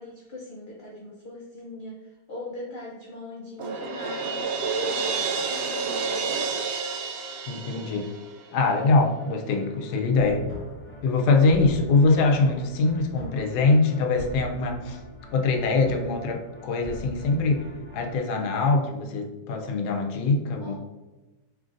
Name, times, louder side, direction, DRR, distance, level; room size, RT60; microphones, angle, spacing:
voice 1, 0.0-6.5 20.6-20.8, left 1 dB, 60° left, -4 dB, 0.5 m, -40 dB
Crash cymbal, 3.6-8.5, right 5 dB, 75° right, 0.6 m, -29 dB
voice 2, 7.5-8.1 8.5-10.5 11.0-15.0 15.3-17.6 17.9-20.8, left 3 dB, 85° left, 3 dB, 1.2 m, -23 dB
sound 1, 9.0-18.2, left 1 dB, 10° left, 0.6 m, -43 dB
3.7 x 3.2 x 2.5 m, 1.1 s
omnidirectional pair, 1.7 m